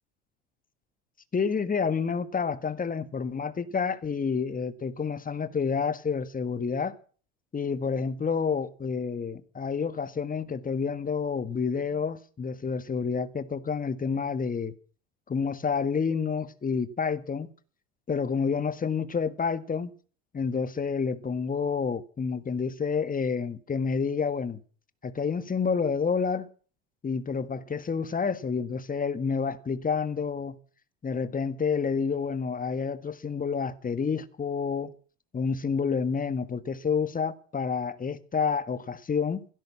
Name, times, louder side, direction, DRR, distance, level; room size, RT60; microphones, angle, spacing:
voice 1, 1.3-7.0 7.5-14.7 15.3-17.5 18.1-19.9 20.3-24.6 25.0-26.5 27.0-30.6 31.0-34.9 35.3-39.5, left 5 dB, 25° left, 1.6 m, -29 dB
16.5 x 13.0 x 6.0 m
hypercardioid pair, 75°, 36 cm